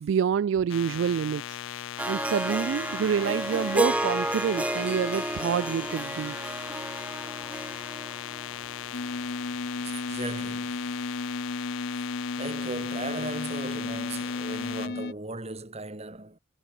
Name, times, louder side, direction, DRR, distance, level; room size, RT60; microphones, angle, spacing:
voice 1, 0.0-1.6 2.1-6.4, right 7 dB, 70° right, 0.3 m, -27 dB
sound 1, 0.7-14.9, left 11 dB, 85° left, 0.3 m, -38 dB
Harp, 2.0-9.1, right 1 dB, 5° right, 0.4 m, -31 dB
sound 2, 8.9-15.1, left 3 dB, 55° left, 0.8 m, -34 dB
voice 2, 9.8-11.2 11.9-12.0 12.4-16.4, right 2 dB, 35° right, 3.0 m, -38 dB
head